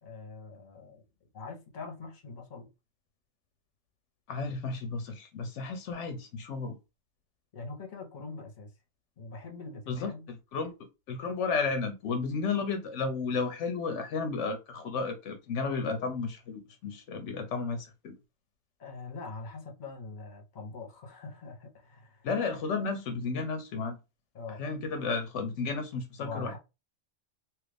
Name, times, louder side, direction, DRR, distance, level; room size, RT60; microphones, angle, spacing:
voice 1, 0.0-1.0 1.3-2.7 7.5-8.7 9.2-10.3 18.8-22.3 24.3-24.6 26.2-26.6, left 3 dB, 45° left, 1.0 m, -43 dB
voice 2, 4.3-6.8 9.9-10.7 11.1-18.1 22.2-24.0 24.6-26.6, left 4 dB, 75° left, 0.9 m, -33 dB
2.9 x 2.5 x 3.3 m
omnidirectional pair, 1.3 m